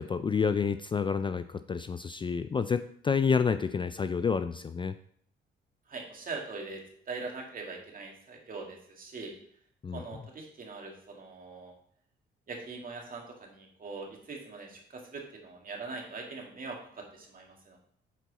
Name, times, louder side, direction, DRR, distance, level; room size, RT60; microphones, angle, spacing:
voice 1, 0.0-4.9 9.8-10.0, left 5 dB, 25° left, 11 dB, 0.3 m, -29 dB
voice 2, 5.9-6.8 7.1-9.3 9.9-11.7 12.5-17.8, right 3 dB, 45° right, 1 dB, 2.1 m, -42 dB
8.2 x 4.6 x 4.1 m, 0.63 s
cardioid pair, 90°, 20 cm